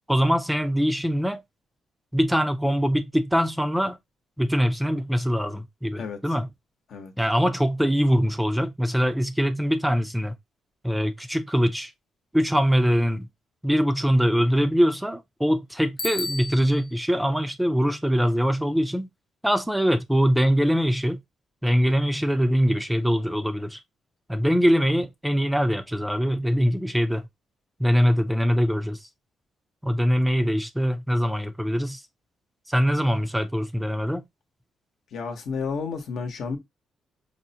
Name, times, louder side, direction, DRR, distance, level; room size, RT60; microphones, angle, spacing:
voice 1, 0.1-1.4 2.1-4.0 4.4-6.5 7.2-10.3 10.8-11.9 12.3-13.3 13.6-19.1 19.4-21.2 21.6-23.8 24.3-27.3 27.8-29.1 29.8-32.0 32.7-34.2, equal, 5° right, 0.4 m, -23 dB
Bicycle bell, 16.0-17.0, left 2 dB, 40° left, 0.9 m, -32 dB
voice 2, 35.1-36.6, left 5 dB, 70° left, 0.9 m, -31 dB
4.8 x 2.1 x 2.7 m
cardioid pair, 90°, 0 cm